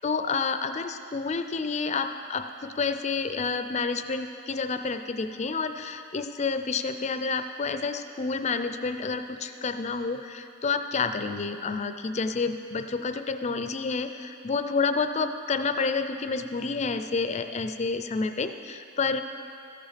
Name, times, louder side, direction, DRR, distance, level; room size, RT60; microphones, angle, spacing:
voice 1, 0.0-19.2, left 4 dB, 30° left, 9 dB, 0.4 m, -29 dB
14.0 x 8.7 x 4.1 m, 2.6 s
head